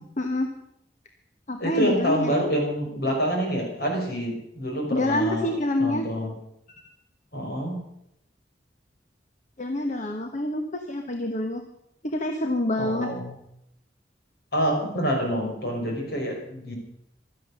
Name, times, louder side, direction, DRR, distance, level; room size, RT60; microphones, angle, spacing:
voice 1, 0.2-0.5 1.5-2.3 4.9-6.0 9.6-11.6 12.0-13.1, left 1 dB, 45° left, 5 dB, 1.2 m, -26 dB
voice 2, 1.6-5.5 5.8-6.3 7.3-7.8 12.8-13.3 14.5-16.8, equal, 65° left, 1 dB, 5.3 m, -27 dB
16.0 x 12.5 x 6.5 m, 0.78 s
head